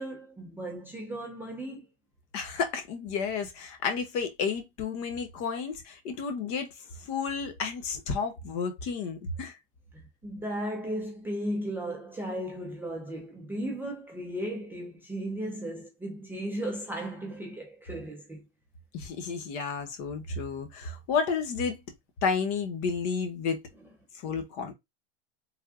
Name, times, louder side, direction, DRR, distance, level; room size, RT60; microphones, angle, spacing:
voice 1, 0.0-1.9 9.9-18.4 23.8-23.9, right 1 dB, 5° right, 0.4 m, -36 dB
voice 2, 2.3-6.7 7.0-9.5 18.9-21.8 22.2-23.6 24.2-24.7, left 5 dB, 45° left, 1.0 m, -31 dB
3.4 x 2.3 x 2.4 m
supercardioid pair, 130°, 32 cm